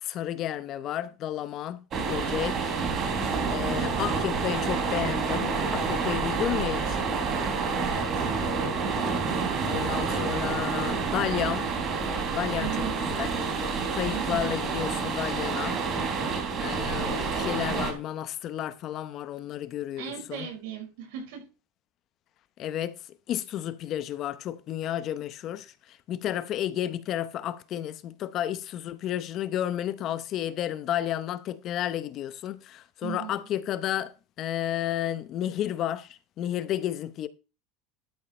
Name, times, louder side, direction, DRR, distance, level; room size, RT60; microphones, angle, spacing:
voice 1, 0.0-2.7 3.5-7.1 9.7-11.7 12.3-12.7 13.1-13.3 13.9-15.8 16.6-20.5 22.6-23.0 23.3-25.7 26.1-34.1 34.4-37.3, left 11 dB, 40° left, 0.8 m, -32 dB
sound 1, 1.9-17.9, right 4 dB, 35° right, 3.1 m, -28 dB
voice 2, 3.2-4.1 5.6-6.2 7.3-8.4 12.5-13.0 14.1-14.6 20.0-21.4 33.0-33.4, right 9 dB, 75° right, 5.6 m, -39 dB
12.5 x 5.6 x 5.4 m
supercardioid pair, 145°, 0 cm